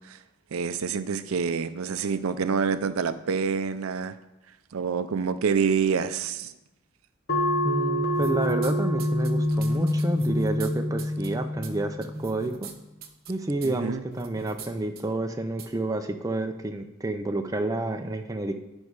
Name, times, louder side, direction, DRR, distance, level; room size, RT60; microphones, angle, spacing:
voice 1, 0.5-4.1 4.7-6.5 13.8-14.0, right 6 dB, 80° right, 12 dB, 0.5 m, -27 dB
sound 1, 7.3-12.4, left 1 dB, 50° left, 0.8 m, -26 dB
voice 2, 7.6-12.7 13.3-18.5, right 2 dB, 15° right, 5 dB, 0.4 m, -29 dB
sound 2, 8.1-8.7 9.0-10.7 11.0-11.3 11.6-11.7 12.0-12.7 13.0-13.3 13.6-13.7 14.1-14.7 15.0-15.1 15.6-15.7, right 5 dB, 45° right, 0.8 m, -42 dB
10.0 x 5.3 x 4.7 m, 0.98 s
head